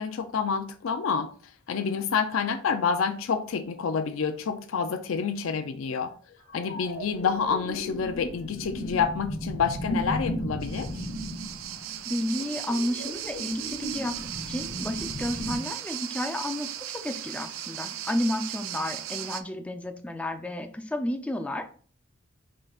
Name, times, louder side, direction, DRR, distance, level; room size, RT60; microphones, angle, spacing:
voice 1, 0.0-6.1 6.5-11.1, left 6 dB, 85° left, 0.4 m, -28 dB
sound 1, 6.5-15.6, equal, 60° left, 1.2 m, -35 dB
sound 2, 10.6-19.4, right 12 dB, 85° right, 0.4 m, -37 dB
voice 2, 12.1-14.1 14.5-21.7, left 1 dB, 5° left, 0.4 m, -31 dB
5.5 x 3.8 x 2.4 m
head